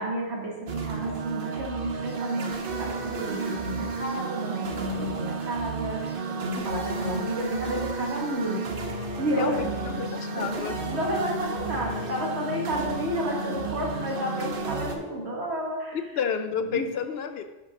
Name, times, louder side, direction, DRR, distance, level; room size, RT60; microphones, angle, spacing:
voice 1, 0.0-8.6 9.2-9.7 10.3-10.5 10.9-16.0 16.5-16.9, equal, 80° right, -2 dB, 1.9 m, -31 dB
sound 1, 0.7-15.0, right 3 dB, 55° right, 0.9 m, -32 dB
voice 2, 9.4-10.8 15.9-17.4, left 6 dB, 70° left, 8 dB, 0.8 m, -30 dB
5.6 x 5.0 x 5.9 m, 1.1 s
omnidirectional pair, 1.1 m